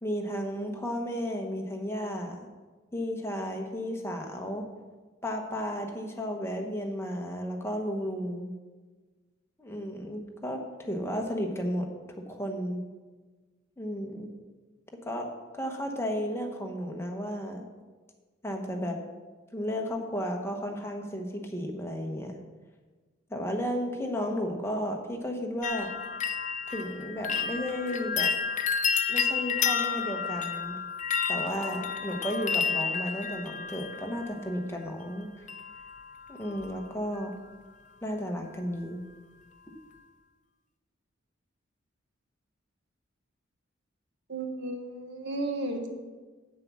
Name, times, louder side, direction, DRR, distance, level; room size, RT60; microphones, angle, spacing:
voice 1, 0.0-2.5 2.9-4.6 5.2-8.5 9.6-10.6 10.9-11.9 12.3-12.8 13.8-14.3 15.0-15.3 15.5-17.6 18.4-19.0 19.5-22.4 23.3-25.9 26.7-28.3 29.1-30.8 31.3-35.3 36.3-37.3 38.0-39.0, equal, 15° left, 2 dB, 1.1 m, -33 dB
sound 1, 25.6-34.6 35.5-36.0 36.3-36.8 37.1-37.2, left 6 dB, 40° left, 0.5 m, -31 dB
voice 2, 44.3-45.9, right 2 dB, 60° right, 5 dB, 1.2 m, -33 dB
8.3 x 7.6 x 6.2 m, 1.3 s
head